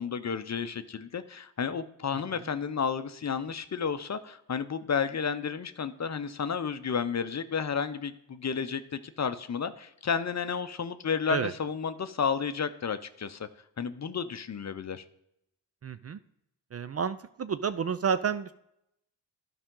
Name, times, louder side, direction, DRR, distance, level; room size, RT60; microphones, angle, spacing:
voice 1, 0.0-13.5 13.8-15.0, left 6 dB, 35° left, 11 dB, 0.7 m, -32 dB
voice 2, 15.8-16.2 16.7-18.5, right 6 dB, 35° right, 13 dB, 0.4 m, -30 dB
12.0 x 5.1 x 3.8 m, 0.78 s
supercardioid pair, 50°, 46 cm